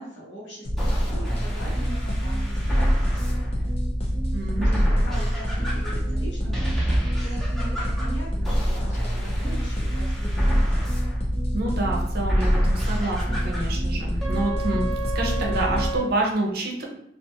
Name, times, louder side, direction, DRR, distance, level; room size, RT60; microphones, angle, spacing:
voice 1, 0.0-3.7 4.5-11.0, right 1 dB, 80° left, -5 dB, 1.0 m, -41 dB
sound 1, 0.6-16.0, left 1 dB, 35° left, 0.4 m, -38 dB
sound 2, 0.7-16.0, equal, ahead, 0.7 m, -25 dB
voice 2, 4.3-4.9 11.5-16.8, right 2 dB, 60° right, 0 dB, 0.6 m, -28 dB
2.4 x 2.3 x 2.8 m, 0.75 s
head